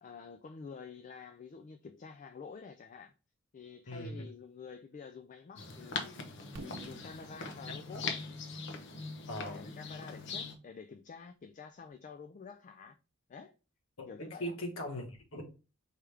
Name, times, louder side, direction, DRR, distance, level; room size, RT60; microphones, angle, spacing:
voice 1, 0.0-3.1 3.5-6.2 6.6-8.0 9.4-13.0 13.3-13.5 14.1-14.5, left 5 dB, 35° left, 0.3 m, -49 dB
voice 2, 3.9-4.2 7.7-8.0 9.3-9.6 14.0-15.4, equal, 75° left, 1.2 m, -40 dB
sound 1, 5.6-10.6, left 4 dB, 60° left, 0.7 m, -41 dB
Fireworks, 6.6-10.4, right 2 dB, 85° right, 0.7 m, -52 dB
4.8 x 3.4 x 3.2 m
head